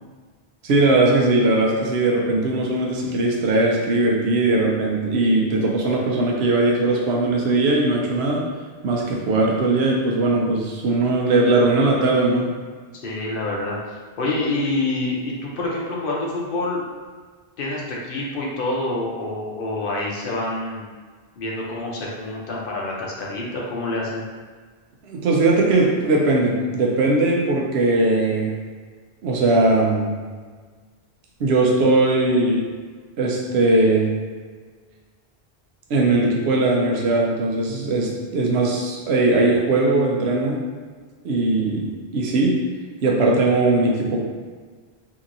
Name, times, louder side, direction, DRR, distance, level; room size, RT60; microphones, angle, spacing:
voice 1, 0.6-8.4 8.8-12.5 25.1-28.5 29.2-30.1 31.4-32.7 33.2-34.1 35.9-40.6 41.2-42.6 43.0-44.2, right 2 dB, 85° right, -2 dB, 0.9 m, -19 dB
voice 2, 13.0-16.8 17.6-20.8 21.4-24.2, left 2 dB, 65° left, -3 dB, 0.7 m, -27 dB
2.9 x 2.7 x 2.5 m, 1.5 s
omnidirectional pair, 1.1 m